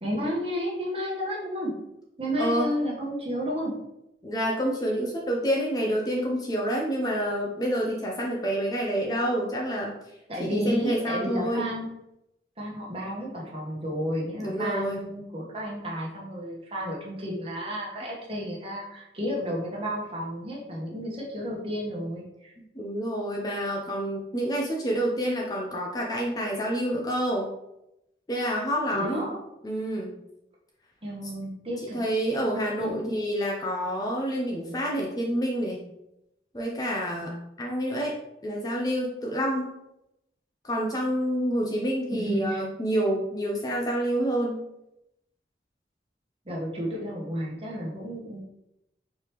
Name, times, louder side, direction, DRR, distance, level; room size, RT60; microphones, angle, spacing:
voice 1, 0.0-1.7 2.2-3.7 10.3-11.9 12.6-22.5 28.9-29.4 31.0-32.0 32.8-33.1 42.1-42.6 46.4-48.4, equal, 30° right, -3 dB, 1.1 m, -32 dB
voice 2, 2.4-2.7 4.2-9.9 10.4-11.7 14.4-15.0 22.7-27.5 28.3-29.3 29.6-30.1 31.8-35.9 36.5-38.2 38.4-39.7 40.6-44.6, equal, 20° left, -1 dB, 0.5 m, -28 dB
4.9 x 3.4 x 2.9 m, 0.85 s
head